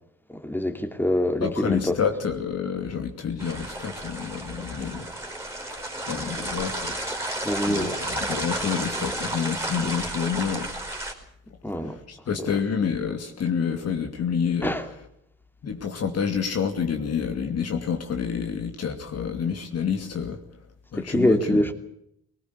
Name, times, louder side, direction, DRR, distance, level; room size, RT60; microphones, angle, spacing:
voice 1, 0.3-2.0 7.4-8.0 11.6-12.0 12.4-12.5 14.6-14.9 20.9-21.7, left 1 dB, 5° left, 2.7 m, -25 dB
voice 2, 1.4-5.1 5.7-7.0 7.7-10.7 11.8-14.7 15.6-20.4 20.9-21.6, left 7 dB, 55° left, 2.7 m, -28 dB
sound 1, 3.4-11.1, right 1 dB, 10° right, 5.0 m, -32 dB
20.0 x 18.5 x 8.4 m
cardioid pair, 90°, 30 cm